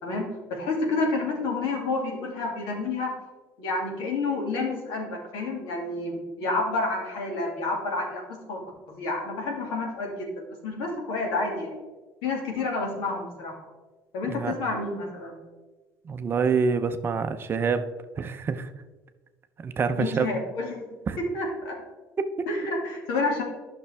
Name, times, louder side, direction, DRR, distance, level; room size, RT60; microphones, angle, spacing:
voice 1, 0.0-3.1 3.6-11.8 12.2-13.5 14.1-15.3 20.0-20.8 21.2-21.8 22.5-23.4, left 3 dB, 80° left, 0 dB, 2.3 m, -29 dB
voice 2, 16.1-17.9 18.2-18.7 19.6-20.3 21.1-21.2 22.2-22.5, right 5 dB, 30° right, 9 dB, 0.6 m, -26 dB
11.0 x 6.0 x 3.4 m, 1.3 s
cardioid pair, 125°, 7 cm